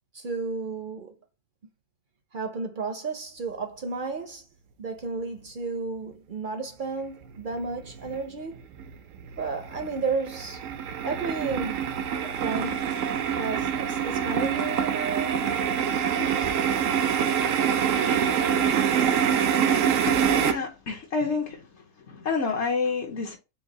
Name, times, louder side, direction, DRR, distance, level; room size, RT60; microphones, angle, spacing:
voice 1, 0.1-1.1 2.3-4.5 4.8-8.6 9.4-10.6 11.0-11.8 12.4-12.9 13.4-15.5, right 4 dB, 55° right, 0.6 m, -32 dB
sound 1, 7.4-8.2 8.6-20.5, right 8 dB, 80° right, 1.0 m, -25 dB
voice 2, 20.0-21.6 22.1-23.4, left 4 dB, 65° left, 1.1 m, -28 dB
4.7 x 2.3 x 3.8 m
omnidirectional pair, 1.4 m